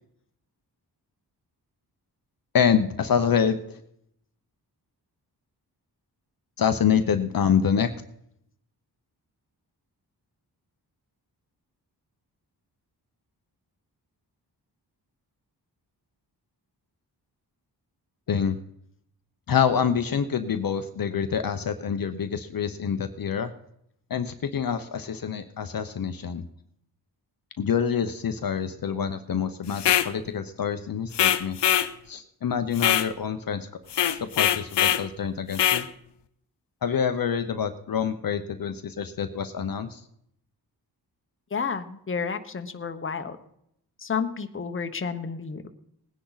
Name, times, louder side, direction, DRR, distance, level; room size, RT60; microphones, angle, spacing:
voice 1, 2.5-3.8 6.6-7.9 18.3-18.6 19.5-23.5 24.1-26.4 27.6-31.6 32.1-33.7 34.2-35.9 36.8-40.0, left 7 dB, 55° left, 8 dB, 0.8 m, -26 dB
sound 1, 29.7-30.1 31.1-31.9 32.8-33.1 33.9-35.0 35.5-35.9, left 11 dB, 90° left, 0.7 m, -22 dB
voice 2, 41.5-43.4 44.0-45.7, left 5 dB, 30° left, 8 dB, 1.0 m, -31 dB
19.5 x 10.0 x 4.0 m, 0.75 s
wide cardioid pair, 110°, 41 cm